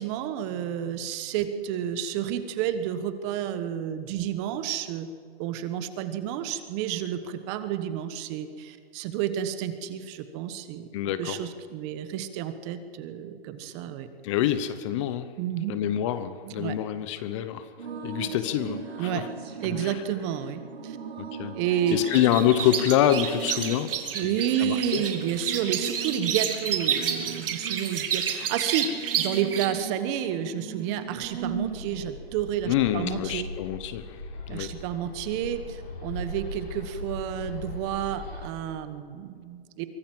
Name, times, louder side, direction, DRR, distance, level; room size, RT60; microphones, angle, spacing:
voice 1, 0.0-5.1 5.4-10.9 11.2-14.1 15.4-15.8 16.4-16.8 19.0-19.2 19.6-21.0 21.5-22.0 24.1-33.5 34.5-39.9, right 10 dB, 25° right, 10 dB, 1.2 m, -30 dB
voice 2, 10.9-11.4 14.2-15.3 15.7-17.7 18.0-19.2 19.8-20.0 21.2-21.6 21.9-24.3 24.6-25.0 32.7-34.2 34.5-34.7, left 11 dB, 30° left, 12 dB, 0.8 m, -26 dB
sound 1, 17.8-32.2, right 5 dB, 85° right, 3.5 m, -39 dB
sound 2, 21.9-29.7, right 8 dB, 65° right, 2.9 m, -30 dB
Bird, 31.2-38.5, left 1 dB, 75° left, 7.2 m, -40 dB
24.0 x 17.0 x 7.8 m, 2.2 s
hypercardioid pair, 150°, 30 cm